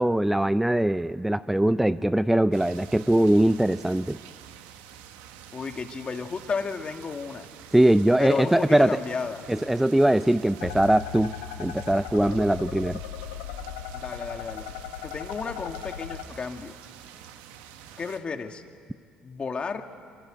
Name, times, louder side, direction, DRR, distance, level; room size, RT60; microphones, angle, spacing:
voice 1, 0.0-4.2 7.7-9.0 9.5-11.3 11.6-13.0, right 1 dB, 5° right, 13 dB, 0.6 m, -21 dB
sound 1, 2.5-18.2, right 10 dB, 80° right, 1.6 m, -47 dB
voice 2, 5.5-7.5 8.2-9.4 13.9-14.7 15.0-16.8 18.0-18.6 19.2-19.8, left 5 dB, 35° left, 5 dB, 2.4 m, -32 dB
sound 2, 10.6-16.2, left 10 dB, 90° left, 1.3 m, -38 dB
24.5 x 24.5 x 9.3 m, 2.1 s
supercardioid pair, 65°, 3 cm